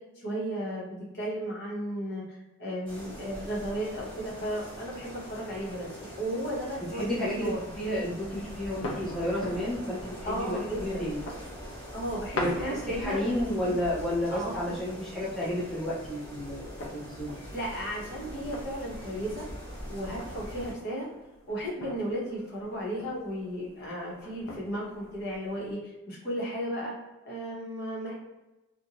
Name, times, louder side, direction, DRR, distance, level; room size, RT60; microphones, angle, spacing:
voice 1, 0.2-0.9 1.1-5.9 6.2-7.0 7.4-7.6 10.2-11.1 11.9-13.2 13.6-13.7 14.3-14.5 17.5-19.5 19.9-21.1 21.5-26.9 27.2-28.1, equal, 55° left, -5 dB, 1.0 m, -34 dB
sound 1, 2.9-20.7, equal, 25° left, 1.0 m, -43 dB
voice 2, 6.9-11.2 12.4-17.3, left 1 dB, 5° left, -8 dB, 0.5 m, -31 dB
sound 2, 7.7-25.7, left 1 dB, 85° left, 0.5 m, -43 dB
2.5 x 2.2 x 2.9 m, 1.0 s
head